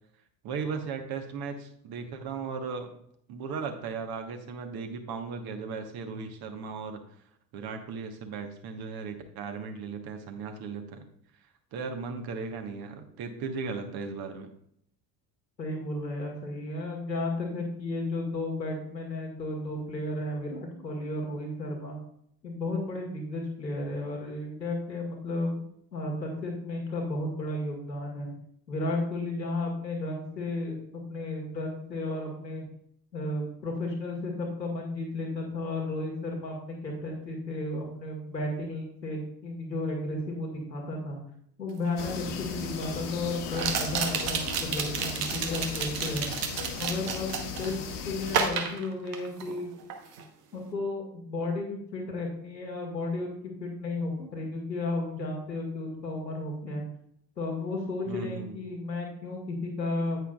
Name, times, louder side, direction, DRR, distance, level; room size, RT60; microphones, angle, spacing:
voice 1, 0.4-2.9 3.3-7.0 7.5-11.0 11.7-14.5 58.0-58.6, right 5 dB, 50° right, 6 dB, 1.4 m, -36 dB
voice 2, 15.6-22.0 22.4-25.6 25.9-28.3 28.7-32.6 33.1-41.2 41.6-46.3 46.8-47.7 48.0-49.7 50.5-56.8 57.4-60.2, left 2 dB, 85° left, -1 dB, 1.9 m, -33 dB
sound 1, 41.8-41.9 43.5-47.7 48.3-49.6 49.9-50.2, right 6 dB, 65° right, 1.2 m, -31 dB
sound 2, 42.0-48.5, left 5 dB, 55° left, 1.4 m, -37 dB
9.6 x 8.7 x 2.4 m, 0.69 s
figure-of-eight pair, 55°, 49 cm